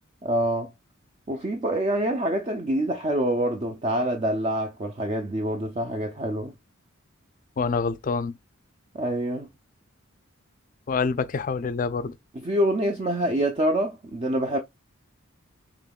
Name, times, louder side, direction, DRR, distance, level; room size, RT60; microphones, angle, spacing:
voice 1, 0.2-0.7 1.3-6.5 8.9-9.5 12.4-14.6, right 1 dB, 30° right, 0.4 m, -26 dB
voice 2, 7.6-8.3 10.9-12.1, left 5 dB, 40° left, 0.4 m, -26 dB
5.2 x 3.0 x 2.2 m
head